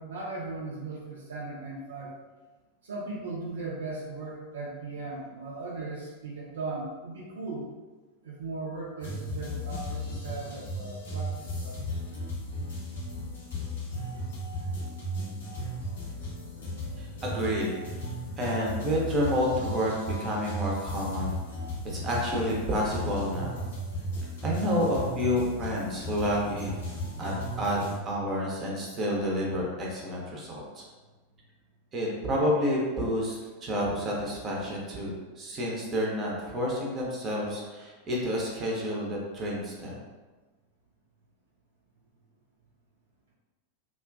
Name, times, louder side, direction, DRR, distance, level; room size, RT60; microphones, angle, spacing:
voice 1, 0.0-2.1 2.8-7.7 8.2-12.0 26.9-27.3 28.8-29.0, right 3 dB, 65° right, -4 dB, 0.4 m, -38 dB
sound 1, 9.0-28.0, equal, 65° left, 0.7 m, -35 dB
voice 2, 17.0-17.8 18.4-21.3 21.8-23.5 24.4-26.8 27.2-30.8 31.9-35.1 35.4-40.0, equal, 25° right, -3 dB, 0.6 m, -29 dB
2.4 x 2.2 x 2.3 m, 1.3 s
figure-of-eight pair, 90°, 0 cm